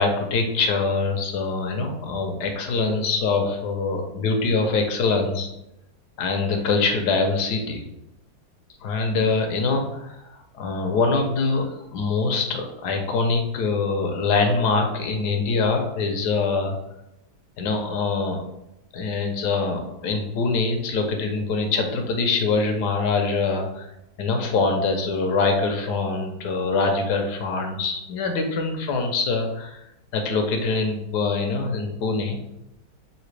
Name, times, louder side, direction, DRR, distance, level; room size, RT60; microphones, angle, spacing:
voice 1, 0.0-5.5 6.2-7.8 8.8-16.8 17.6-18.4 18.9-23.9 24.2-29.8 30.1-32.5, left 4 dB, 80° left, 4 dB, 1.3 m, -24 dB
5.7 x 2.8 x 3.2 m, 0.86 s
omnidirectional pair, 1.8 m